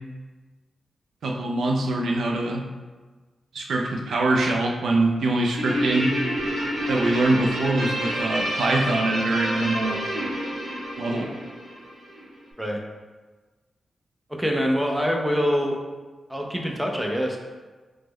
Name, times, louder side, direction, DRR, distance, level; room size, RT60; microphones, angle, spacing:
voice 1, 1.2-2.6 3.5-6.1 6.9-10.0 11.0-11.3, right 2 dB, 85° right, 1 dB, 0.3 m, -23 dB
Guitar, 5.6-12.3, equal, 50° right, 0.7 m, -29 dB
voice 2, 14.3-15.8 16.3-17.4, equal, 5° right, 0 dB, 0.3 m, -24 dB
3.0 x 2.1 x 3.5 m, 1.3 s
wide cardioid pair, 180°, 0 cm